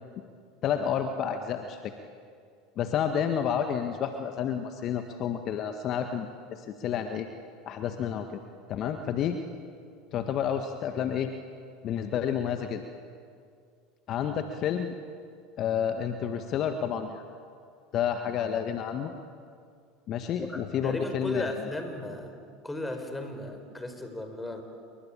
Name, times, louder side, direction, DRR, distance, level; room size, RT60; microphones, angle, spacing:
voice 1, 0.6-1.9 2.8-7.3 7.6-8.4 8.7-9.4 10.1-11.3 11.8-12.8 14.1-14.9 15.6-17.2 17.9-19.1 20.1-21.7, left 8 dB, 45° left, 7 dB, 1.7 m, -30 dB
voice 2, 20.4-24.6, left 1 dB, 10° left, 6 dB, 5.3 m, -36 dB
28.0 x 24.0 x 8.9 m, 2.2 s
hypercardioid pair, 80°, 0 cm